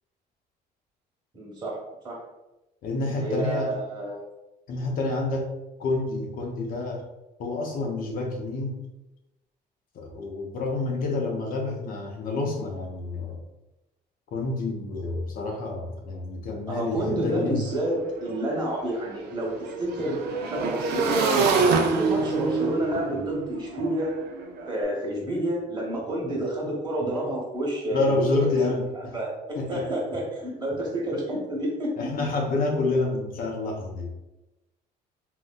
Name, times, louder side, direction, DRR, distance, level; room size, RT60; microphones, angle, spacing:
voice 1, 1.3-1.8 2.0-2.2 3.1-4.2 16.7-20.2 20.5-21.5 21.9-24.1 24.7-28.6 29.1-32.1, right 1 dB, 25° right, -4 dB, 1.1 m, -29 dB
voice 2, 2.8-3.8 4.7-5.5 5.8-7.1 7.4-8.8 9.9-13.4 14.3-17.6 27.9-29.1 29.6-29.9 32.0-34.1, left 2 dB, 55° left, 1 dB, 0.6 m, -28 dB
Motorcycle / Engine, 17.2-17.3 17.6-24.7, right 4 dB, 75° right, 0.5 m, -27 dB
3.7 x 2.1 x 2.2 m, 0.98 s
cardioid pair, 110°, 17 cm